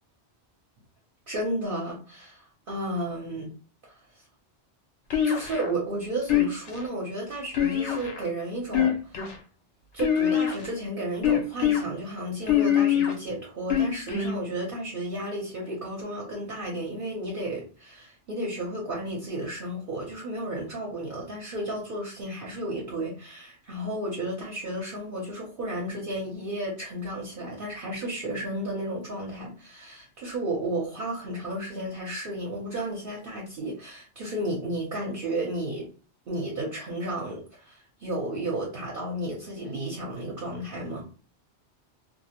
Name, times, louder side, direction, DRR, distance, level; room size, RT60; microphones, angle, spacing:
voice 1, 1.3-3.5 3.8-4.0 5.2-9.3 9.9-35.9 36.3-41.0, right 1 dB, 55° right, -4 dB, 0.8 m, -33 dB
sound 1, 5.1-5.7 6.3-6.8 7.5-8.3 8.7-9.4 10.0-10.7 11.2-11.8 12.5-13.1 13.7-14.3, left 9 dB, 85° left, 1.0 m, -23 dB
2.4 x 2.0 x 2.8 m, 0.38 s
omnidirectional pair, 1.2 m